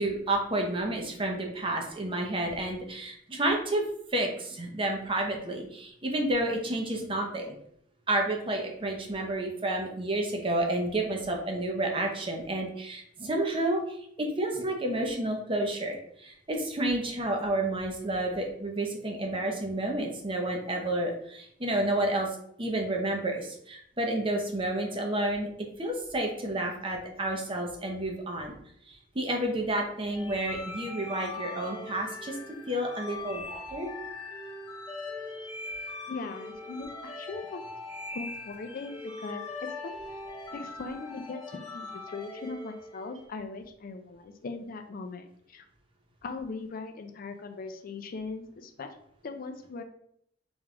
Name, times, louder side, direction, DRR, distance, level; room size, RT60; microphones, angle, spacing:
voice 1, 0.0-3.8 4.1-7.6 8.1-13.8 14.2-22.3 22.6-25.5 25.8-28.6 28.9-32.4 32.7-33.9, right 1 dB, 25° right, 2 dB, 0.7 m, -30 dB
sound 1, 30.1-43.2, left 3 dB, 20° left, 0.9 m, -41 dB
voice 2, 36.1-37.7 38.1-40.2 40.5-45.6 46.2-48.9 49.2-49.8, left 3 dB, 50° left, 6 dB, 0.4 m, -40 dB
3.5 x 3.3 x 3.7 m, 0.69 s
head